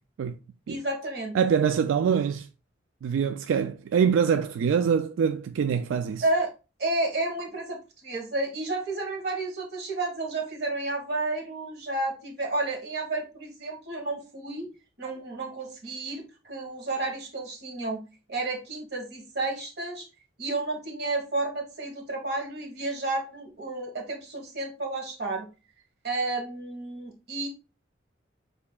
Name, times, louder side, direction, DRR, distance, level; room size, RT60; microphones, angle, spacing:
voice 1, 0.7-1.3 6.2-6.5 6.8-14.7 15.0-18.0 18.3-20.0 20.4-25.5 26.0-27.5, right 2 dB, 55° right, 1.4 m, -31 dB
voice 2, 1.3-2.5 3.0-6.2, right 7 dB, 90° right, 0.3 m, -24 dB
7.0 x 2.8 x 2.3 m
head